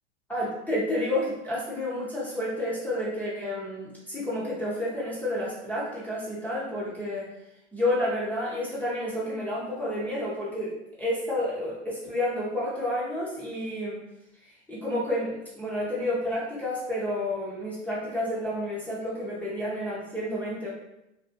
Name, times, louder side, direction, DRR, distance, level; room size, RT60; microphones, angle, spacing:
voice 1, 0.3-7.3 7.7-14.0 14.7-20.7, left 1 dB, 5° left, -8 dB, 0.6 m, -30 dB
2.5 x 2.3 x 2.5 m, 0.87 s
hypercardioid pair, 115°, 36 cm